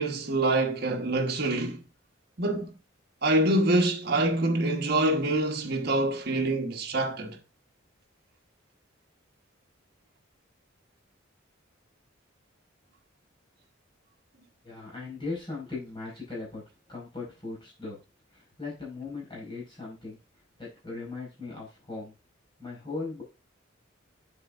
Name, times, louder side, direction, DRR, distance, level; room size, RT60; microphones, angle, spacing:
voice 1, 0.0-1.8 2.4-2.7 3.2-7.4, right 2 dB, 55° right, 1.4 m, -25 dB
voice 2, 14.6-16.6 16.9-18.0 18.3-20.2 20.6-22.1 22.6-23.2, left 3 dB, 25° left, 5.1 m, -38 dB
8.1 x 7.9 x 2.5 m
head